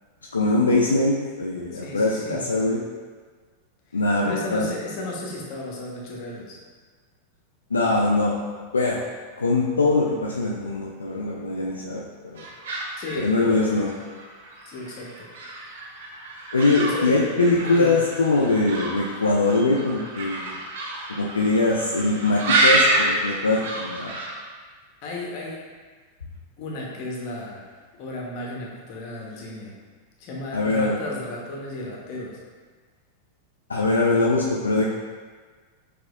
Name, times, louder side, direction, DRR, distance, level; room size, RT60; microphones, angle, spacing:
voice 1, 0.3-2.8 3.9-4.7 7.7-8.3 8.7-9.0 9.4-12.4 13.2-14.0 16.5-20.5 21.1-24.1 30.5-31.0 33.7-34.9, left 2 dB, 75° left, -3 dB, 0.4 m, -22 dB
voice 2, 1.7-2.5 3.9-6.6 13.0-13.3 14.7-15.3 16.8-17.1 17.6-18.0 25.0-25.6 26.6-27.7 27.9-29.8 30.2-32.4, left 2 dB, 40° left, -2 dB, 0.9 m, -34 dB
sound 1, 12.4-24.4, right 2 dB, 55° right, 0.7 m, -28 dB
5.9 x 2.8 x 2.4 m, 1.5 s
figure-of-eight pair, 90°, 0 cm